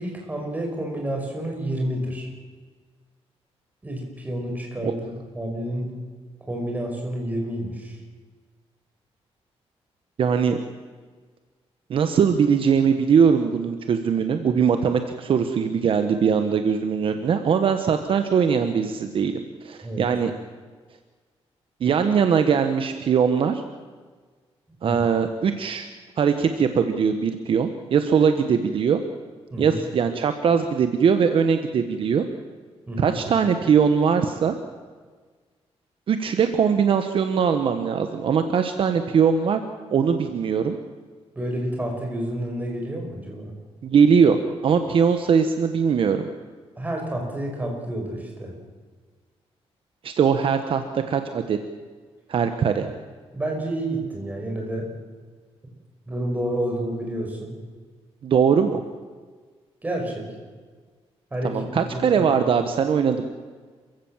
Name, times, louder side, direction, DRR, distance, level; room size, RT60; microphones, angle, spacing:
voice 1, 0.0-2.3 3.8-5.1 5.3-5.9 6.5-8.0 19.8-20.1 24.8-25.0 29.5-29.8 32.9-33.2 41.4-43.5 46.8-48.5 53.3-54.9 56.1-57.6 59.8-60.3 61.3-62.3, right 1 dB, 15° right, 1 dB, 5.7 m, -29 dB
voice 2, 10.2-10.6 11.9-19.3 19.6-20.3 21.8-23.6 24.8-25.9 26.2-29.0 29.6-32.2 33.0-34.5 36.1-39.6 39.9-40.8 43.8-46.3 50.0-51.6 52.3-52.9 58.2-58.8 61.4-63.2, right 6 dB, 55° right, 8 dB, 1.3 m, -21 dB
27.5 x 16.0 x 7.4 m, 1.5 s
wide cardioid pair, 145°, 11 cm